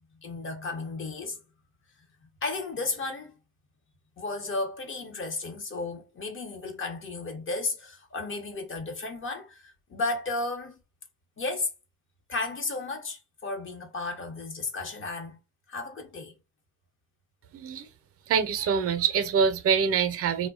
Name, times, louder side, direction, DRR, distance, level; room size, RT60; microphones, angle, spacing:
voice 1, 0.2-1.4 2.4-3.3 4.2-10.8 11.4-11.7 12.3-15.4 15.7-16.3, left 3 dB, 45° left, 0.8 m, -33 dB
voice 2, 17.5-17.9 18.3-20.5, right 6 dB, 50° right, 0.5 m, -25 dB
2.6 x 2.1 x 2.3 m
cardioid pair, 90°, 30 cm